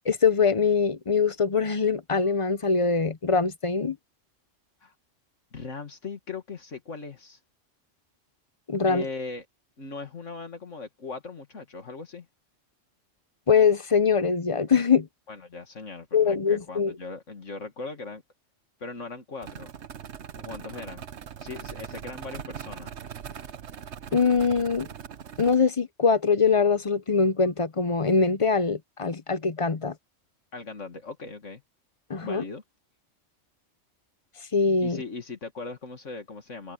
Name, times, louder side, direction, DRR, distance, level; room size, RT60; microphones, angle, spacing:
voice 1, 0.1-4.0 8.7-9.0 13.5-15.1 16.1-16.9 24.1-24.9 25.4-29.9 32.1-32.4 34.5-35.0, left 5 dB, 30° left, 0.6 m, -23 dB
voice 2, 5.5-7.4 8.9-9.5 9.8-12.3 15.3-18.2 18.8-19.7 20.4-21.1 21.4-22.9 30.5-31.6 32.2-32.6 34.8-36.7, left 3 dB, 75° left, 2.4 m, -39 dB
sound 1, 19.4-25.5, right 8 dB, 65° right, 1.2 m, -41 dB
omnidirectional pair, 1.3 m